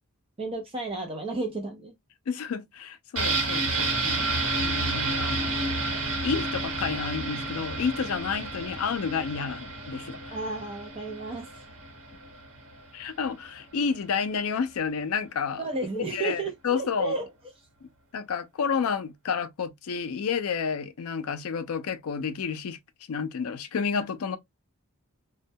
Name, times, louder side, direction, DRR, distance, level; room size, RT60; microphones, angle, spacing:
voice 1, 0.4-1.9 10.3-11.6 15.6-17.3, right 3 dB, 25° right, 0.5 m, -32 dB
voice 2, 2.3-5.6 6.2-10.4 12.9-15.6 16.1-17.2 17.8-22.8 23.1-24.4, left 6 dB, 75° left, 0.4 m, -30 dB
sound 1, 3.2-12.8 13.1-13.2, right 2 dB, 65° right, 1.1 m, -30 dB
2.2 x 2.1 x 2.6 m
head